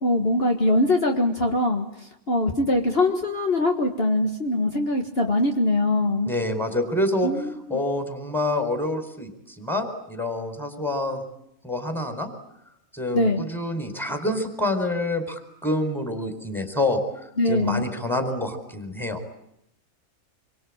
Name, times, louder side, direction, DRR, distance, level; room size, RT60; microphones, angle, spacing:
voice 1, 0.0-6.3 7.2-7.8 13.1-13.4 17.4-17.9, left 1 dB, 45° left, 2 dB, 2.1 m, -22 dB
voice 2, 6.3-11.2 11.6-12.3 12.9-19.2, left 1 dB, ahead, 6 dB, 4.4 m, -27 dB
27.0 x 23.5 x 8.8 m, 0.79 s
omnidirectional pair, 1.4 m